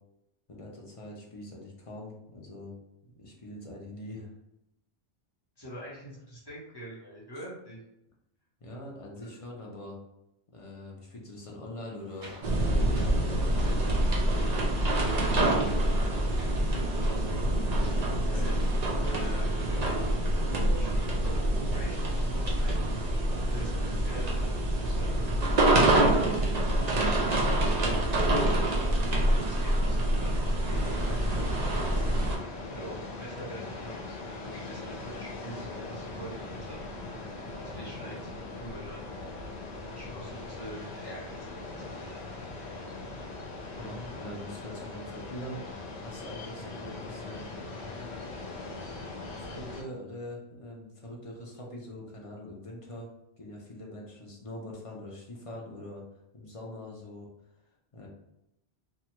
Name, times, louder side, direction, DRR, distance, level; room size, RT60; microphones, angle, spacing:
voice 1, 0.5-2.7 3.0-4.3 8.6-10.0 10.5-12.4 12.7-14.0 18.2-18.5 43.8-47.5 49.4-53.1 53.4-56.0 56.3-57.3 57.9-58.1, left 1 dB, 40° left, -2 dB, 0.5 m, -43 dB
voice 2, 5.6-7.8 9.2-9.3 14.7-15.7 16.0-17.4 18.2-20.2 20.5-21.4 21.7-22.8 23.4-26.6 27.0-28.5 28.8-31.8 32.4-36.8 37.6-39.0 40.0-41.4 41.7-42.2, right 1 dB, 25° left, -7 dB, 0.9 m, -45 dB
sound 1, 12.0-18.9, right 1 dB, 90° right, 1.3 m, -48 dB
sound 2, 12.4-32.4, right 1 dB, 45° right, 0.6 m, -26 dB
sound 3, 30.7-49.8, left 3 dB, 80° left, 0.9 m, -40 dB
2.9 x 2.3 x 2.9 m, 0.86 s
omnidirectional pair, 1.1 m